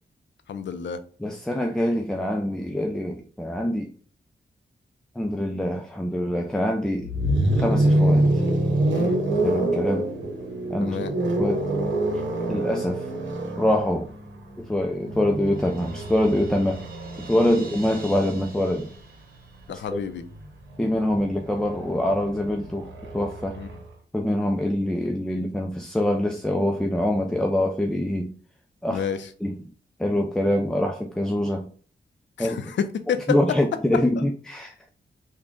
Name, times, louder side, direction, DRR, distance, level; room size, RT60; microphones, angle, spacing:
voice 1, 0.5-1.0 8.9-9.2 10.8-11.1 17.4-17.6 19.7-20.2 23.6-23.7 28.9-29.2 32.4-33.4, left 7 dB, 80° left, 0.5 m, -29 dB
voice 2, 1.2-3.9 5.2-7.1 7.6-8.4 9.4-10.1 10.7-11.0 11.4-11.7 12.5-13.1 13.6-14.1 14.6-16.8 17.2-18.9 19.7-20.0 20.8-23.6 24.1-28.3 28.8-29.1 29.4-29.6 30.0-31.7 32.4-32.6 33.3-34.7, left 1 dB, 5° left, 0.4 m, -25 dB
sound 1, 7.0-19.0 20.2-23.8, right 1 dB, 90° right, 0.8 m, -26 dB
Crash cymbal, 14.2-19.9, right 4 dB, 50° right, 0.9 m, -46 dB
3.7 x 2.2 x 3.6 m
cardioid pair, 80°, 19 cm